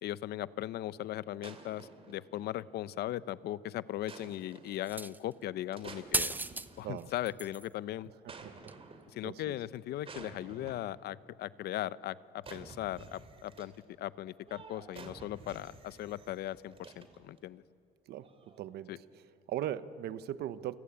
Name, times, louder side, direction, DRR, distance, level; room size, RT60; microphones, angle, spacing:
voice 1, 0.0-6.3 6.8-8.1 9.1-13.7 14.0-17.6 18.9-19.0, left 13 dB, 70° left, 17 dB, 0.7 m, -38 dB
sound 1, 1.4-2.9 4.1-4.9 5.7-7.1 8.3-9.3 10.0-11.1 12.4-13.8 14.5-17.4 18.2-18.6, right 4 dB, 35° right, 2.8 m, -51 dB
sound 2, 4.8-5.3 6.1-6.7 7.0-7.7 8.7-8.8, right 2 dB, 10° right, 0.7 m, -34 dB
voice 2, 8.2-8.7 9.2-9.6 18.1-18.3 18.6-20.8, right 12 dB, 70° right, 14 dB, 1.1 m, -39 dB
29.5 x 24.0 x 8.5 m, 2.5 s
cardioid pair, 110°, 17 cm